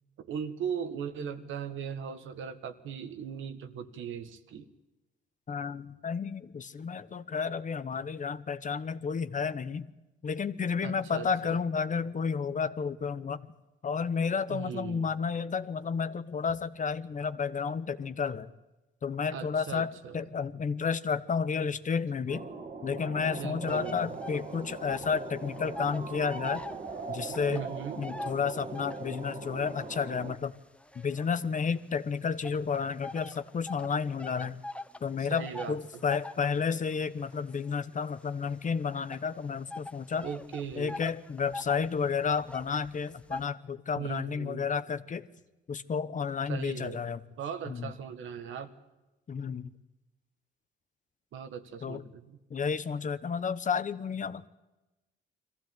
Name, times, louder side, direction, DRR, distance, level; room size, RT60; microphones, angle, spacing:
voice 1, 0.2-4.7 10.8-11.6 14.5-15.1 19.3-20.3 23.3-24.2 27.3-28.0 35.2-36.0 40.2-41.0 43.9-44.7 46.5-47.0 47.4-48.7 51.3-52.4, right 7 dB, 80° right, 9 dB, 1.7 m, -39 dB
voice 2, 5.5-9.9 10.2-13.4 13.8-18.5 19.0-22.5 22.8-26.7 27.1-27.6 28.0-30.5 30.9-34.6 35.0-40.3 40.8-45.2 45.7-47.2 47.7-47.9 49.3-49.7 51.8-52.0 52.5-54.5, left 6 dB, 40° left, 13 dB, 1.1 m, -31 dB
sound 1, 22.3-30.4, right 4 dB, 40° right, 2.0 m, -41 dB
sound 2, 23.7-25.2 25.5-29.2 29.7-31.8 32.4-43.5, left 2 dB, 5° left, 0.8 m, -44 dB
22.0 x 15.0 x 9.4 m, 1.1 s
cardioid pair, 90°, 20 cm